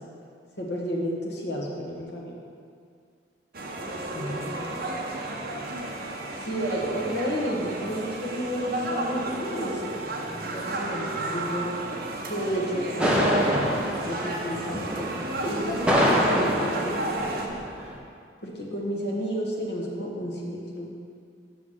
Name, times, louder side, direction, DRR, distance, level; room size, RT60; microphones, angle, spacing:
voice 1, 0.6-2.4 4.1-4.5 6.0-9.8 10.4-12.0 12.3-13.5 14.0-15.1 15.4-17.5 18.4-20.9, equal, 65° left, -3 dB, 1.4 m, -31 dB
sound 1, 3.5-17.5, right 2 dB, 50° right, 0.8 m, -33 dB
sound 2, 13.0-18.0, equal, 5° right, 0.8 m, -26 dB
6.1 x 5.9 x 6.2 m, 2.3 s
head